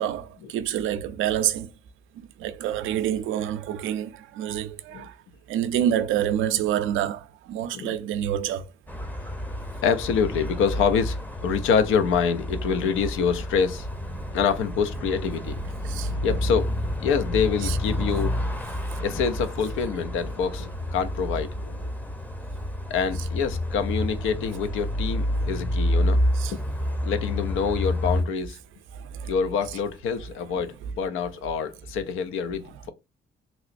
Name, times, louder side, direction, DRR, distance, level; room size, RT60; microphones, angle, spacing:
voice 1, 0.0-1.7 2.4-5.1 5.5-8.7 15.8-16.1 17.6-17.8 25.3-25.4 26.4-26.5 28.9-29.3, right 10 dB, 85° right, 0.4 m, -27 dB
sound 1, 8.9-28.2, left 1 dB, 10° left, 0.6 m, -29 dB
voice 2, 9.8-13.9 14.3-15.6 16.2-16.7 17.0-18.4 19.0-21.9 22.9-26.2 26.5-26.6 27.0-28.6 29.3-32.9, left 6 dB, 85° left, 0.5 m, -26 dB
3.0 x 3.0 x 2.5 m
cardioid pair, 90°, 20 cm